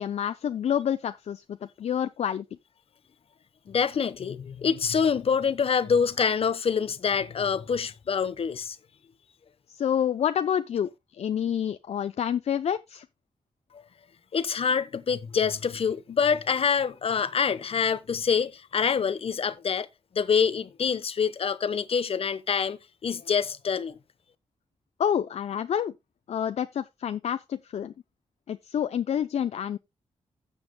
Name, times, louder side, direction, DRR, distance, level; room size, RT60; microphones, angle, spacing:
voice 1, 0.0-2.4 9.7-10.9 11.2-13.0 25.0-25.9 26.3-27.9 28.5-29.8, left 9 dB, 75° left, 0.5 m, -28 dB
voice 2, 3.7-8.8 14.3-19.9 20.2-24.0, left 6 dB, 60° left, 1.0 m, -26 dB
16.0 x 6.9 x 2.2 m
wide cardioid pair, 105°, 11 cm